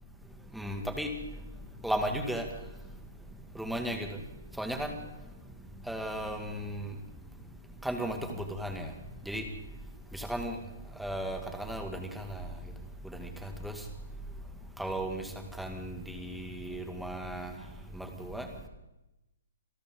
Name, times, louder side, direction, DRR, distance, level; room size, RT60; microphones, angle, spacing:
voice 1, 0.6-1.1 1.8-2.5 3.6-4.1 4.6-4.9 5.9-6.9 7.8-8.2 8.6-8.9 9.3-9.4 10.2-10.6 11.0-12.4 13.2-13.3 13.6-13.7 14.8-15.2 15.6-17.5 18.0-18.5, right 1 dB, ahead, 4 dB, 2.1 m, -35 dB
26.5 x 13.0 x 3.8 m, 0.95 s
figure-of-eight pair, 130°, 0 cm